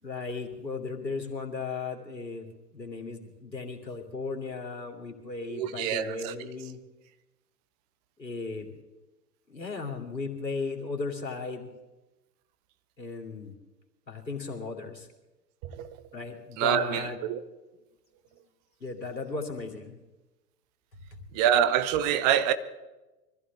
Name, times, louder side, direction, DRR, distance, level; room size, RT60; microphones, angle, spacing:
voice 1, 0.0-2.5 2.7-6.8 8.2-8.7 9.5-11.7 13.0-13.6 14.1-15.1 16.1-17.2 18.8-20.0, left 4 dB, 80° left, 3.0 m, -36 dB
voice 2, 5.5-6.5 15.6-15.9 16.6-17.4 21.3-22.5, right 9 dB, 25° right, 0.8 m, -26 dB
24.5 x 15.0 x 3.5 m
figure-of-eight pair, 105°, 50 cm